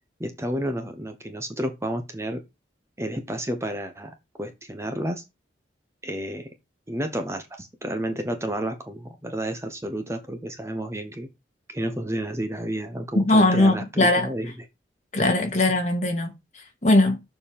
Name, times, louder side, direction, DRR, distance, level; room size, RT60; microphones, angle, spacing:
voice 1, 0.2-2.4 3.0-5.2 6.0-6.5 6.9-11.3 11.7-14.5, right 1 dB, 15° right, 1.0 m, -31 dB
voice 2, 13.1-14.3 15.1-17.2, left 2 dB, 40° left, 2.1 m, -20 dB
7.0 x 5.4 x 5.3 m
head